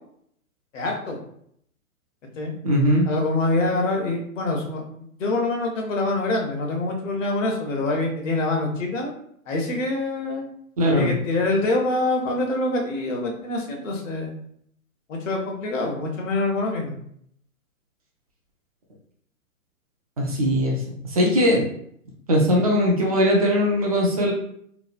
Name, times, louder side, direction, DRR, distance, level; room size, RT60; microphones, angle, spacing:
voice 1, 0.7-1.2 2.4-2.5 3.1-4.8 5.2-9.1 9.5-10.4 10.9-14.3 15.1-16.9, left 2 dB, 60° left, 1 dB, 0.9 m, -25 dB
voice 2, 2.6-3.1 10.8-11.1 20.2-20.8 21.1-21.7 22.3-24.3, equal, 30° right, -2 dB, 0.4 m, -20 dB
3.0 x 2.1 x 2.5 m, 0.68 s
figure-of-eight pair, 125°, 42 cm